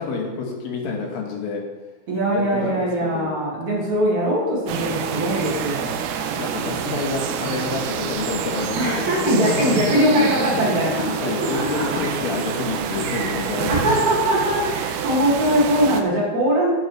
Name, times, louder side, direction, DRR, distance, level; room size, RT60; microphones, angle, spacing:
voice 1, 0.0-1.6 2.3-3.3 6.3-14.0, left 4 dB, 70° left, -1 dB, 3.0 m, -28 dB
voice 2, 2.1-6.0 8.8-11.0 11.4-12.0 13.7-16.7, equal, 50° right, -5 dB, 3.3 m, -21 dB
sound 1, 4.7-16.0, right 7 dB, 85° right, 2.7 m, -27 dB
9.7 x 9.0 x 3.2 m, 1.2 s
omnidirectional pair, 4.5 m